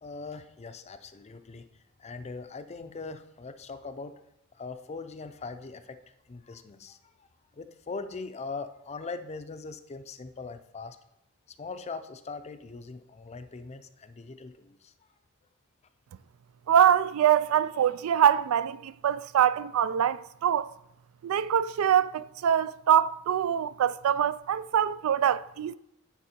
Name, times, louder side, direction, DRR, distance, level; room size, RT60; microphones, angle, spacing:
voice 1, 0.0-1.7 2.0-4.2 4.6-6.0 6.3-7.3 7.5-11.0 11.6-14.9, left 4 dB, 30° left, 0.5 m, -41 dB
voice 2, 16.7-20.7 21.2-25.8, right 9 dB, 75° right, 0.3 m, -24 dB
9.4 x 4.6 x 4.3 m
head